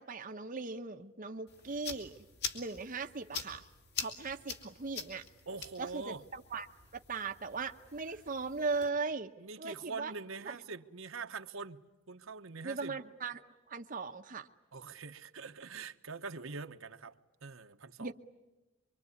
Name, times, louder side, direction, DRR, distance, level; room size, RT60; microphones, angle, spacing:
voice 1, 0.0-2.1 2.5-3.6 4.0-5.2 5.8-6.7 6.9-9.3 9.6-10.1 10.5-10.6 12.6-14.5 18.0-18.1, right 4 dB, 40° right, 0.9 m, -38 dB
sound 1, 1.5-8.9, left 6 dB, 50° left, 2.8 m, -45 dB
voice 2, 5.5-6.2 9.4-11.8 12.1-13.0 14.7-17.2 17.4-18.1, right 4 dB, 70° right, 1.1 m, -44 dB
24.5 x 24.5 x 9.6 m
head